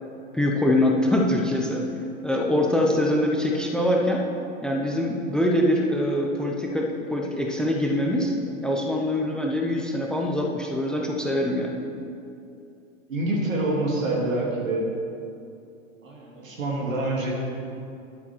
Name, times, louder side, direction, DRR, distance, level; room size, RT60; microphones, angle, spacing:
voice 1, 0.3-1.9 2.2-4.2 4.6-8.3 8.6-11.8, left 1 dB, ahead, 0 dB, 0.7 m, -24 dB
voice 2, 13.1-14.9 16.0-17.3, right 2 dB, 85° right, -2 dB, 2.7 m, -26 dB
10.5 x 8.4 x 4.5 m, 2.6 s
hypercardioid pair, 115°, 38 cm